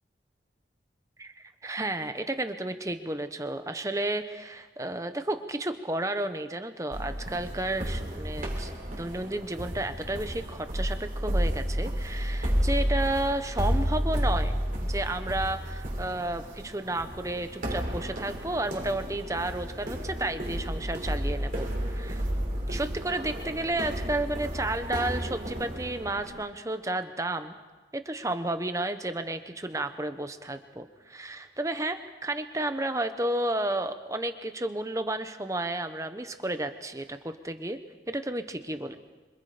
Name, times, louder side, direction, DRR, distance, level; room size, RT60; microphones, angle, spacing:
voice 1, 1.6-14.6 14.9-22.3 22.7-27.5 27.9-37.8 38.1-39.0, right 1 dB, 20° right, 9 dB, 1.2 m, -32 dB
sound 1, 6.9-26.4, equal, 45° right, 4.0 m, -31 dB
26.5 x 26.0 x 5.1 m, 1.2 s
head